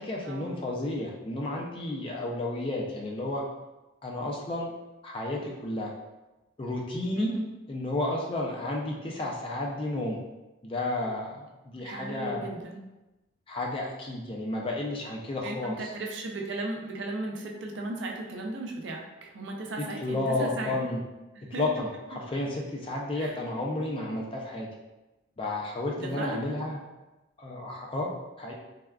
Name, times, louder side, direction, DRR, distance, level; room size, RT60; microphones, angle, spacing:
voice 1, 0.0-3.4 4.0-4.7 5.0-5.9 6.6-7.3 7.7-10.2 10.6-12.5 13.5-15.9 20.0-21.0 21.6-24.7 25.4-26.8 27.4-28.1 28.4-28.5, left 2 dB, 30° left, -1 dB, 0.4 m, -32 dB
voice 2, 11.8-12.8 15.4-20.8 21.5-21.6 23.2-23.3 25.9-26.4, right 2 dB, 70° right, 1 dB, 0.4 m, -36 dB
3.4 x 2.3 x 2.2 m, 1.1 s
head